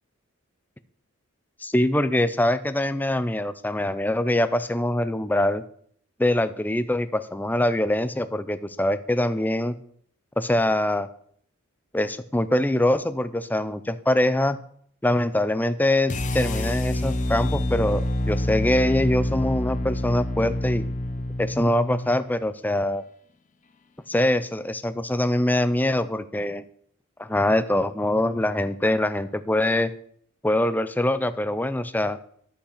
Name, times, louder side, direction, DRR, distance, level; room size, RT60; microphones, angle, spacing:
voice 1, 1.6-5.6 6.2-9.8 10.4-11.1 11.9-14.6 15.0-20.9 21.4-23.0 24.1-26.6 27.2-29.9 30.4-32.2, left 1 dB, 10° left, 13 dB, 0.5 m, -23 dB
sound 1, 16.1-22.2, left 1 dB, 35° left, 0.9 m, -27 dB
12.5 x 5.7 x 6.5 m, 0.62 s
head